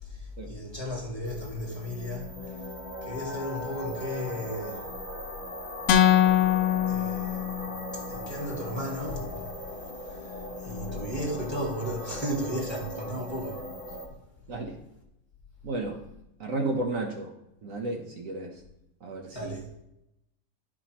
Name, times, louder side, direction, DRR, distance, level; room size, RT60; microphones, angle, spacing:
voice 1, 0.0-2.6 3.0-4.8 6.9-9.5 9.8-13.6 19.3-19.7, equal, 15° left, 1.9 m, -35 dB
sound 1, 1.2-14.1, left 1 dB, 35° left, 1.4 m, -39 dB
sound 2, 5.9-8.0, left 10 dB, 70° left, 1.1 m, -23 dB
voice 2, 15.6-16.0 16.4-17.3 17.6-18.5 19.0-19.5, right 2 dB, 65° right, 1.2 m, -32 dB
11.5 x 5.1 x 2.9 m
omnidirectional pair, 1.6 m